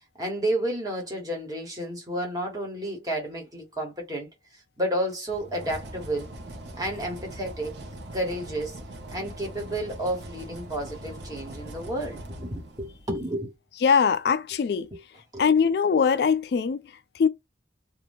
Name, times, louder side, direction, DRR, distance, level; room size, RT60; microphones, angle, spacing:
voice 1, 0.2-4.3 4.8-6.3 6.8-7.8 8.1-8.8 9.1-13.5 14.9-15.0 15.3-15.4, right 1 dB, 20° right, 1.1 m, -31 dB
sound 1, 5.3-13.2, right 1 dB, 70° right, 0.7 m, -41 dB
voice 2, 13.8-14.9 15.4-16.8 17.2-17.3, left 6 dB, 60° left, 0.3 m, -21 dB
2.7 x 2.2 x 3.5 m
head